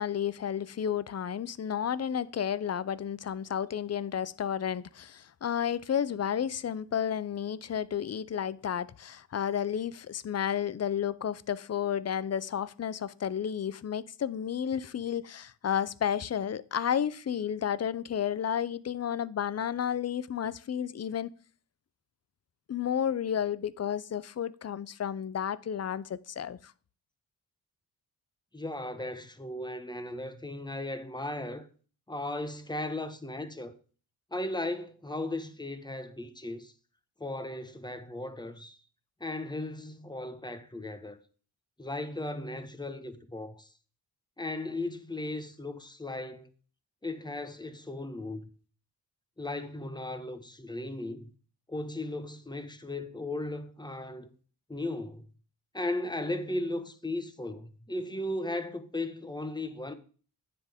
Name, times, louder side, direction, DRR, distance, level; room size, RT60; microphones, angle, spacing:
voice 1, 0.0-21.3 22.7-26.7, left 9 dB, 40° left, 0.5 m, -32 dB
voice 2, 28.5-31.7 32.1-33.7 34.3-36.7 37.2-38.8 39.2-41.2 41.8-43.7 44.4-46.5 47.0-48.5 49.4-51.3 51.7-54.3 54.7-55.3 55.7-59.9, left 2 dB, 10° left, 1.2 m, -36 dB
10.0 x 7.5 x 3.6 m
cardioid pair, 60°, 41 cm